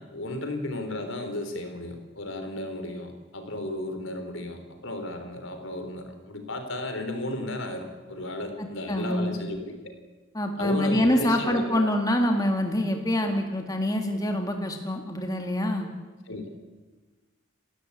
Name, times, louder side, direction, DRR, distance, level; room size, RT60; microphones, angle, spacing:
voice 1, 0.0-9.9 10.6-11.9 16.3-16.5, left 1 dB, 75° left, 7 dB, 3.7 m, -34 dB
voice 2, 8.6-9.3 10.3-15.9, left 1 dB, 20° left, 4 dB, 2.0 m, -26 dB
29.5 x 13.0 x 8.6 m, 1.3 s
head